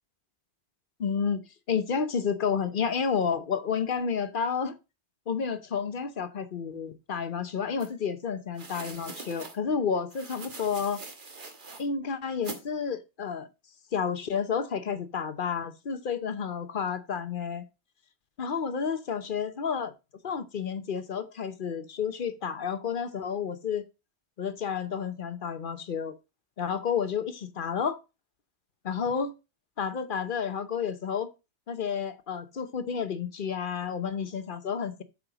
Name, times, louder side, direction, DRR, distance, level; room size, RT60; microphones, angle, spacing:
voice 1, 1.0-1.4 1.7-4.7 5.3-11.0 11.8-13.5 13.9-17.7 18.4-19.9 20.2-23.8 24.4-26.1 26.6-28.0 28.8-29.3 29.8-31.3 31.7-35.0, left 6 dB, 55° left, 1.0 m, -30 dB
sound 1, 7.8-7.9 8.5-9.6 10.1-11.8 12.4-12.6, right 3 dB, 50° right, 1.5 m, -42 dB
8.7 x 4.9 x 4.9 m
omnidirectional pair, 1.1 m